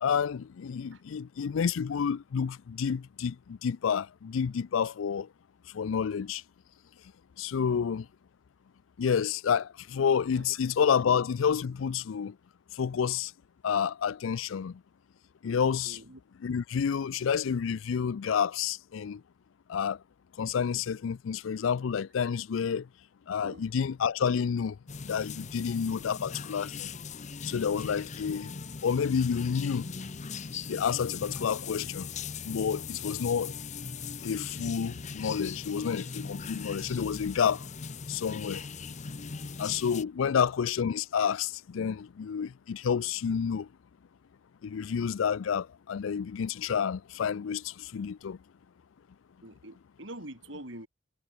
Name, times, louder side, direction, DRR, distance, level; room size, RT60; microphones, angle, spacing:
voice 1, 0.0-5.3 5.7-6.4 7.4-8.1 9.0-12.3 12.8-13.3 13.6-14.8 15.4-16.0 16.4-19.2 19.7-20.0 20.4-22.9 23.3-24.8 25.0-26.9 27.4-28.5 28.8-29.9 30.7-32.1 32.4-33.5 34.2-37.7 38.1-38.6 39.6-43.7 44.6-48.4, left 7 dB, 80° left, 0.4 m, -29 dB
voice 2, 15.8-16.2 23.4-23.7 40.2-40.4 49.4-50.9, right 1 dB, 65° right, 5.8 m, -45 dB
sound 1, 24.9-40.0, left 5 dB, 35° left, 0.7 m, -40 dB
head